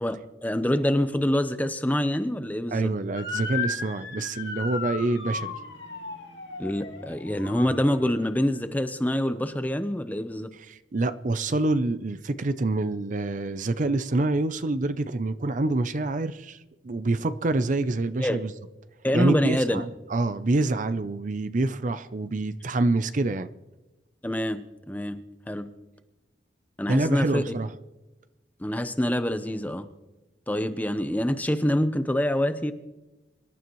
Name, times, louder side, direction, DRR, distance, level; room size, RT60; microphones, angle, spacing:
voice 1, 0.0-2.9 6.6-10.5 18.2-18.4 19.0-19.8 24.2-25.2 25.5-25.7 26.8-27.4 28.6-29.9 30.5-32.7, left 1 dB, 10° left, 0.8 m, -26 dB
voice 2, 2.7-5.5 10.7-16.6 16.8-18.5 19.1-23.5 26.9-27.7, right 2 dB, 45° right, 0.6 m, -26 dB
Motor vehicle (road) / Siren, 3.1-8.4, left 4 dB, 75° left, 2.8 m, -35 dB
25.5 x 12.0 x 3.1 m
head